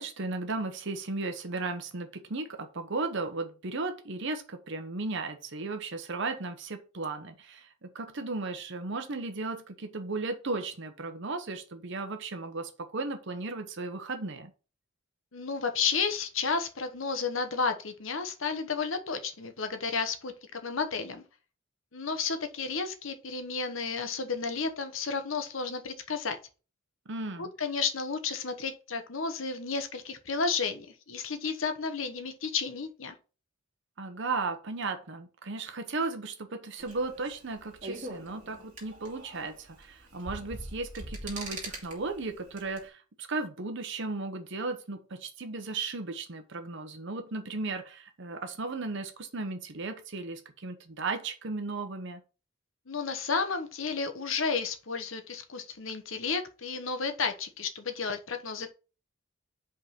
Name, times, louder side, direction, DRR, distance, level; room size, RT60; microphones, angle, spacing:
voice 1, 0.0-14.5 27.1-27.5 34.0-52.2, right 3 dB, 60° right, 0.9 m, -35 dB
voice 2, 15.3-21.2 21.9-26.4 27.4-33.2 52.9-58.7, left 5 dB, 70° left, 1.0 m, -32 dB
sound 1, 36.8-42.8, right 2 dB, 40° right, 2.3 m, -43 dB
5.4 x 3.7 x 5.7 m
head